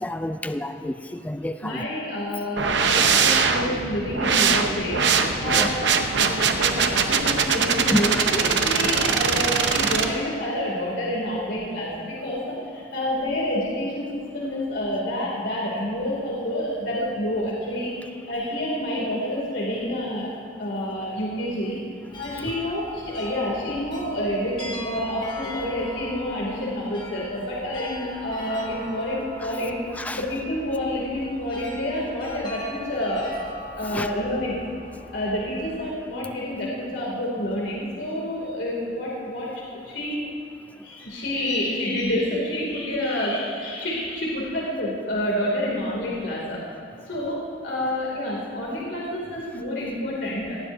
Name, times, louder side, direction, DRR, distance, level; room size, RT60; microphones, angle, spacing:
voice 1, 0.0-1.8 2.9-3.0 5.5-5.7 7.9-8.3 8.5-8.6 29.4-29.6 29.9-30.2 33.8-34.1, left 1 dB, 10° left, 9 dB, 0.3 m, -29 dB
voice 2, 1.6-5.1 5.4-5.8 6.1-20.3 20.6-21.8 22.2-29.8 30.1-33.3 33.8-34.6 35.1-40.2 40.8-46.6 47.1-50.6, left 1 dB, 85° left, -4 dB, 2.7 m, -28 dB
sound 1, 2.6-10.1, right 5 dB, 80° right, 0.8 m, -22 dB
sound 2, 22.1-35.9, left 1 dB, 25° left, 1.8 m, -41 dB
18.5 x 15.0 x 2.7 m, 2.2 s
head